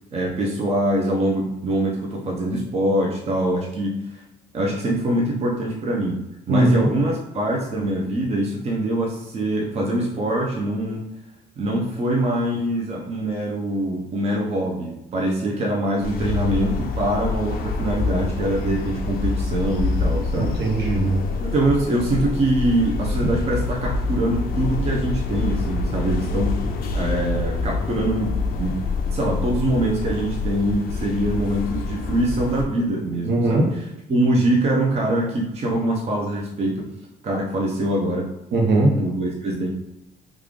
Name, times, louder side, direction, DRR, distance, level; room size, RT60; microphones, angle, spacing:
voice 1, 0.1-4.2 4.5-6.2 6.5-11.0 11.6-20.6 21.4-26.6 26.9-28.8 29.1-36.9 37.2-38.3 39.0-39.7, right 1 dB, 40° right, -2 dB, 0.7 m, -24 dB
voice 2, 6.5-6.9 20.4-21.2 33.3-33.7 38.5-39.0, right 2 dB, 70° right, -1 dB, 1.0 m, -19 dB
sound 1, 16.0-32.6, left 3 dB, 65° left, 0.5 m, -26 dB
3.2 x 2.4 x 3.6 m, 0.89 s
cardioid pair, 110°, 17 cm